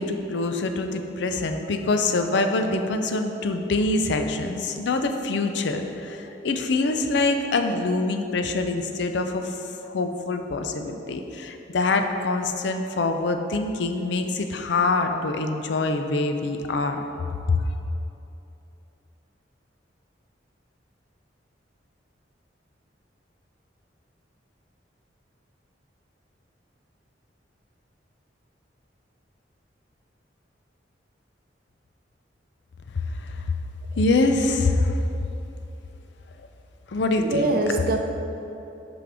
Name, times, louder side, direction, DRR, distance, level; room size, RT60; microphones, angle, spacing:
voice 1, 0.0-9.6 9.9-17.0 17.5-17.6 32.9-33.4 34.0-35.0 36.9-37.4, left 3 dB, 70° left, 6 dB, 0.5 m, -25 dB
voice 2, 37.2-38.0, right 2 dB, 55° right, 4 dB, 0.6 m, -24 dB
5.8 x 5.1 x 4.9 m, 2.9 s
head